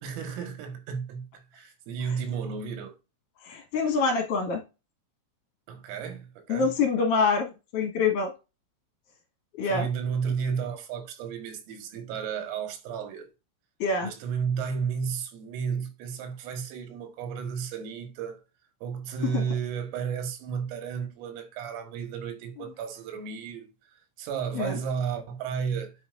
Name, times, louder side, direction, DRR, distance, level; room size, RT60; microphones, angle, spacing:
voice 1, 0.0-2.9 5.7-6.7 9.6-13.3 14.0-18.4 18.8-25.9, right 6 dB, 90° right, 4.2 m, -33 dB
voice 2, 3.4-4.6 6.5-8.3 9.6-9.9 13.8-14.1 19.3-19.4 24.5-24.7, left 4 dB, 55° left, 2.6 m, -25 dB
9.6 x 5.9 x 2.6 m
omnidirectional pair, 5.8 m